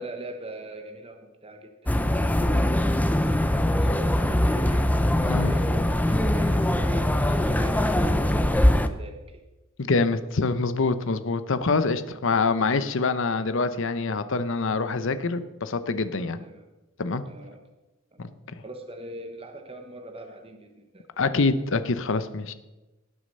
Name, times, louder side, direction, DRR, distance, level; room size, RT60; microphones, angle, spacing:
voice 1, 0.0-9.4 16.4-16.7 17.2-17.6 18.1-18.3 18.6-21.0, right 1 dB, 30° right, 4 dB, 1.1 m, -42 dB
sound 1, 1.9-8.9, left 1 dB, 10° left, 0.5 m, -22 dB
voice 2, 9.8-16.4 17.0-17.2 18.2-18.3 21.2-22.5, left 3 dB, 65° left, 12 dB, 0.8 m, -25 dB
18.5 x 6.6 x 5.4 m, 1.1 s
head